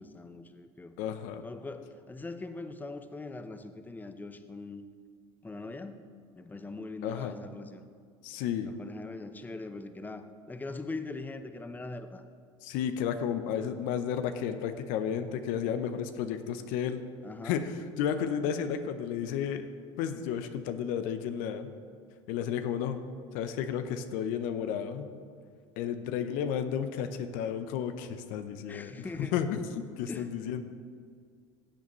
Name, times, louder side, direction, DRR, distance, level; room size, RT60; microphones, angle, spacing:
voice 1, 0.0-0.9 1.4-4.8 5.4-6.1 6.4-7.8 8.6-12.2 17.2-17.6 28.7-29.4 30.1-30.4, left 3 dB, 10° left, 9 dB, 0.7 m, -41 dB
voice 2, 1.0-1.4 7.0-7.3 8.2-8.7 12.6-17.0 17.4-19.7 20.0-21.7 22.3-23.0 23.3-25.1 25.8-29.6 30.0-30.6, left 8 dB, 60° left, 9 dB, 0.7 m, -32 dB
14.5 x 8.1 x 3.1 m, 2.1 s
hypercardioid pair, 75°, 16 cm